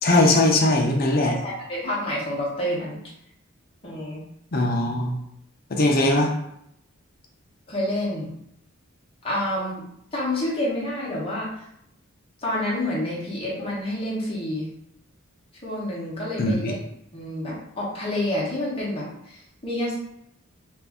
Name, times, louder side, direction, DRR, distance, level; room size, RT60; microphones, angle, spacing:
voice 1, 0.0-1.3 4.5-5.1 5.7-6.3 16.4-16.7, left 2 dB, 45° left, 1 dB, 0.5 m, -20 dB
voice 2, 1.2-3.0 3.8-4.2 5.8-6.1 7.7-8.3 9.2-9.8 10.1-11.6 12.4-14.7 15.6-16.8 17.1-20.0, left 1 dB, 25° left, -6 dB, 0.9 m, -28 dB
2.6 x 2.4 x 3.4 m, 0.76 s
head